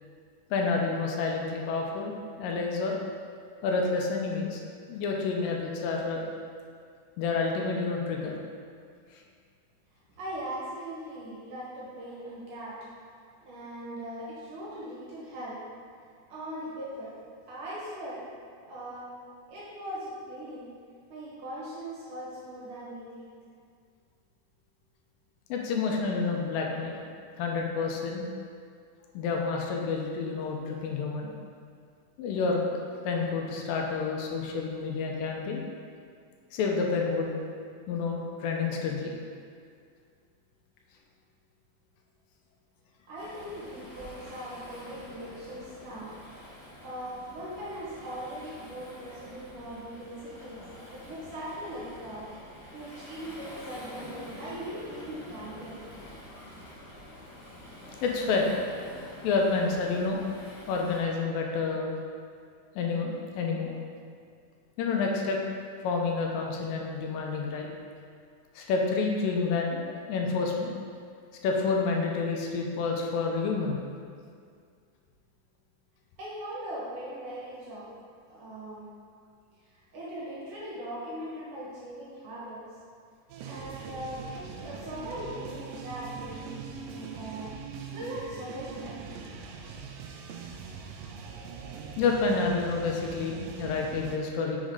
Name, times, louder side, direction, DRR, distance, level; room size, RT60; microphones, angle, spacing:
voice 1, 0.5-2.1 2.4-3.0 3.6-4.6 4.9-6.3 7.2-8.4 25.5-27.0 27.4-28.3 29.1-31.3 32.2-32.8 33.0-35.6 36.5-37.4 37.9-39.1 58.0-58.5 59.2-60.2 60.7-61.9 62.8-63.7 64.8-65.4 65.8-67.7 68.6-70.8 71.4-73.8 92.0-94.6, left 4 dB, 80° left, 0 dB, 2.3 m, -29 dB
voice 2, 10.2-12.8 13.4-15.6 16.3-17.2 17.5-18.3 18.7-19.1 19.5-20.6 21.1-23.3 43.1-46.1 46.8-50.7 50.9-52.3 52.7-55.8 76.2-77.9 78.3-78.8 79.7-82.6 83.4-84.3 84.6-87.5 87.9-89.3, right 1 dB, 65° right, -8 dB, 2.9 m, -40 dB
Waves surf, 43.1-61.0, left 1 dB, 60° left, 1.0 m, -47 dB
sound 1, 83.3-94.2, right 6 dB, 80° right, 2.2 m, -42 dB
6.2 x 3.9 x 4.7 m, 2.2 s
omnidirectional pair, 4.0 m